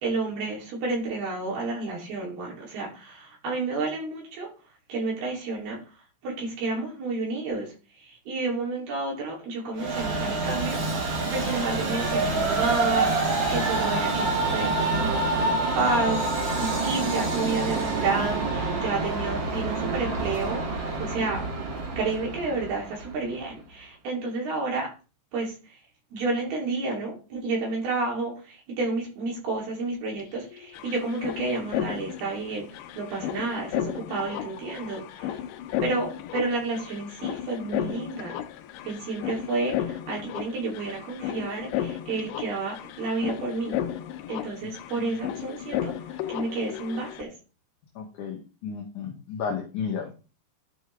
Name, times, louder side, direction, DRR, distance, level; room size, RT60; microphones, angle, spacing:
voice 1, 0.0-4.5 4.9-5.8 6.2-7.7 8.0-21.4 22.0-24.9 25.3-25.5 26.1-32.6 32.9-35.4 35.8-38.3 38.8-43.8 44.3-45.9 46.3-47.3, right 3 dB, 65° right, -2 dB, 5.0 m, -30 dB
Train, 9.8-23.2, right 3 dB, 40° right, 1.8 m, -27 dB
Singing / Musical instrument, 10.6-21.9, right 5 dB, 80° right, 1.3 m, -41 dB
sound 1, 30.2-30.3 30.5-47.2, left 11 dB, 80° left, 2.5 m, -34 dB
voice 2, 44.6-45.1 48.0-50.3, left 6 dB, 60° left, -1 dB, 2.3 m, -34 dB
12.0 x 5.4 x 3.4 m, 0.33 s
omnidirectional pair, 5.0 m